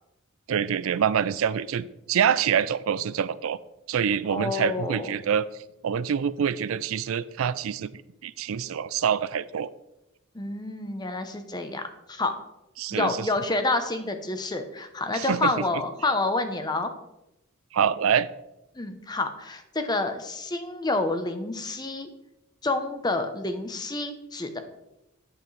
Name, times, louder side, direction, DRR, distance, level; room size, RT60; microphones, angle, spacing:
voice 1, 0.5-3.6 3.9-5.5 5.8-9.7 12.8-13.3 15.1-15.6 17.7-18.3, right 8 dB, 85° right, 16 dB, 0.4 m, -26 dB
voice 2, 4.3-5.1 10.3-11.8 12.1-12.3 12.9-16.9 18.8-22.1 22.6-24.6, left 2 dB, 20° left, 7 dB, 0.7 m, -28 dB
8.9 x 8.0 x 3.2 m, 0.90 s
head